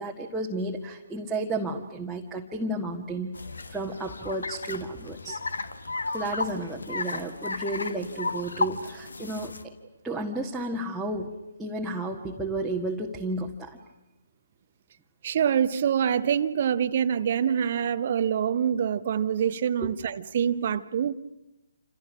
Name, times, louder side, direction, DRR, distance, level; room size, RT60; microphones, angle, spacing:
voice 1, 0.0-3.3 3.7-5.4 6.1-9.7 10.0-13.8 19.8-19.9, right 2 dB, 5° right, -3 dB, 1.7 m, -32 dB
sound 1, 3.3-9.6, left 3 dB, 65° left, 1.7 m, -34 dB
voice 2, 15.2-21.1, right 8 dB, 40° right, 11 dB, 1.0 m, -25 dB
28.5 x 27.5 x 6.2 m, 0.97 s
figure-of-eight pair, 135°, 0 cm